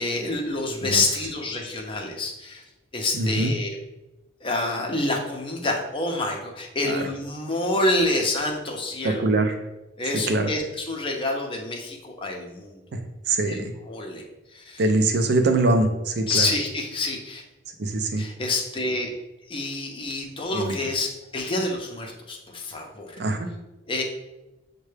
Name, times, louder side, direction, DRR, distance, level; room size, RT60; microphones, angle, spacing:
voice 1, 0.0-2.6 2.9-3.8 4.4-9.2 10.0-12.8 13.5-13.6 13.9-14.2 14.5-14.8 16.3-17.4 18.2-19.1 19.5-23.1 23.9-24.0, left 2 dB, 25° left, 1 dB, 0.6 m, -27 dB
voice 2, 3.1-3.5 6.8-7.1 9.0-9.6 10.1-10.5 12.9-13.7 14.8-16.5 17.8-18.2 20.5-20.8 23.2-23.5, right 2 dB, 55° right, 6 dB, 0.4 m, -23 dB
6.4 x 2.2 x 3.2 m, 0.99 s
head